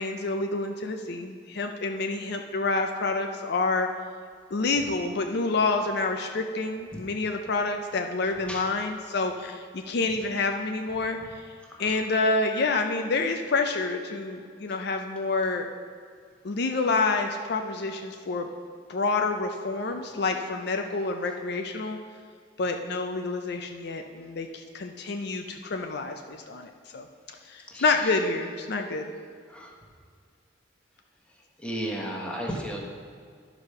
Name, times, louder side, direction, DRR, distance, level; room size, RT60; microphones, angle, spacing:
voice 1, 0.0-3.9 4.5-11.2 11.8-15.7 16.4-18.5 18.9-22.0 22.6-27.0 27.5-29.1, left 3 dB, 60° left, 5 dB, 0.5 m, -28 dB
voice 2, 31.6-32.8, equal, 5° left, -2 dB, 1.2 m, -33 dB
11.0 x 4.9 x 5.6 m, 2.1 s
head